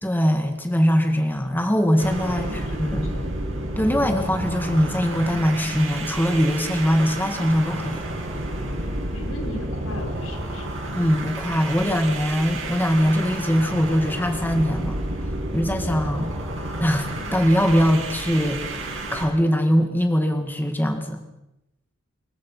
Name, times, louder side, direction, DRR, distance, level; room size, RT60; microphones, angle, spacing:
voice 1, 0.0-3.1 3.8-8.0 10.9-15.0 15.5-16.3 16.8-21.2, equal, 10° left, 5 dB, 2.2 m, -22 dB
sound 1, 2.0-19.3, right 1 dB, 65° right, 6.9 m, -30 dB
voice 2, 2.3-3.3 9.1-10.7, left 1 dB, 85° left, 3 dB, 5.4 m, -37 dB
27.0 x 22.5 x 5.7 m, 0.90 s
head